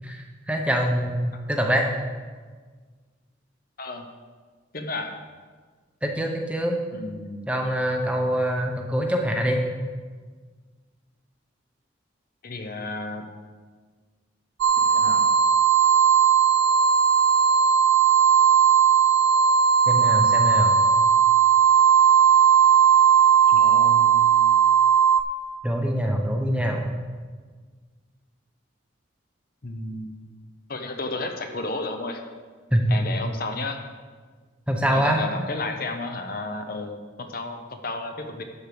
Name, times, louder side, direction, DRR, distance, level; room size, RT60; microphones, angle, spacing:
voice 1, 0.0-1.9 6.0-6.8 7.5-9.6 19.9-20.7 25.6-26.9 32.7-33.0 34.7-35.2, equal, 5° right, 2 dB, 0.8 m, -24 dB
voice 2, 4.7-5.2 6.9-7.5 12.4-13.2 14.9-15.3 20.0-20.5 23.5-24.3 29.6-30.2 30.7-32.2 32.9-33.8 34.9-38.4, left 2 dB, 50° left, 5 dB, 0.8 m, -32 dB
sound 1, 14.6-25.2, right 7 dB, 80° right, 0.5 m, -17 dB
12.0 x 4.6 x 6.9 m, 1.5 s
head